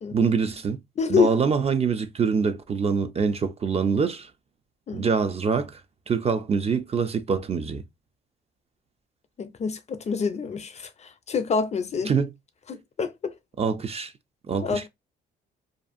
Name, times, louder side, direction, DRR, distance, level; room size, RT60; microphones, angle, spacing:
voice 1, 0.1-0.8 1.1-4.3 4.9-5.8 6.1-7.8 12.1-12.3 13.6-14.1 14.5-14.9, right 5 dB, 30° right, 0.4 m, -24 dB
voice 2, 1.0-1.3 4.9-5.1 9.4-12.1 12.7-13.3 14.6-14.9, left 5 dB, 35° left, 0.4 m, -26 dB
2.5 x 2.4 x 2.5 m
cardioid pair, 90°, 20 cm